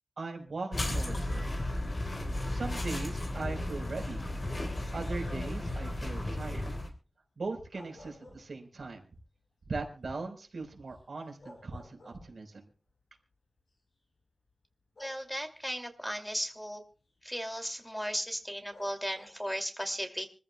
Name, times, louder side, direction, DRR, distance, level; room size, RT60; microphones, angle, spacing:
voice 1, 0.2-1.4 2.5-4.3 4.9-6.7 7.4-9.0 9.7-12.6, right 3 dB, 85° right, 3 dB, 4.3 m, -39 dB
sound 1, 0.7-6.9, left 1 dB, 55° left, 3.6 m, -34 dB
sound 2, 4.5-5.0 7.5-8.9 9.3-9.4 10.9-11.0 11.4-12.6 13.6-13.7 15.0-15.7 18.7-19.6, left 2 dB, 90° left, 8.0 m, -55 dB
voice 2, 15.0-16.8 17.2-20.3, equal, 5° left, 5 dB, 2.6 m, -36 dB
25.5 x 14.5 x 2.3 m, 0.37 s
wide cardioid pair, 75°, 0 cm